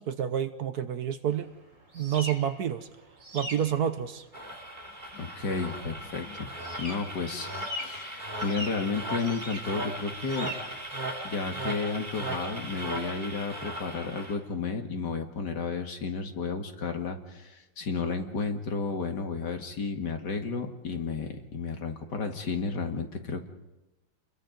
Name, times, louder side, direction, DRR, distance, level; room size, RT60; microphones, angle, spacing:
voice 1, 0.0-1.5 1.9-2.9 3.3-4.3, right 9 dB, 60° right, 10 dB, 1.3 m, -29 dB
sound 1, 1.3-14.5, equal, 40° right, 4.2 m, -44 dB
sound 2, 4.3-14.3, right 1 dB, 25° right, 3.5 m, -37 dB
voice 2, 5.1-6.5 6.8-10.5 11.2-23.5, left 4 dB, 65° left, 5 dB, 2.5 m, -32 dB
29.0 x 22.0 x 5.3 m, 1.0 s
omnidirectional pair, 2.0 m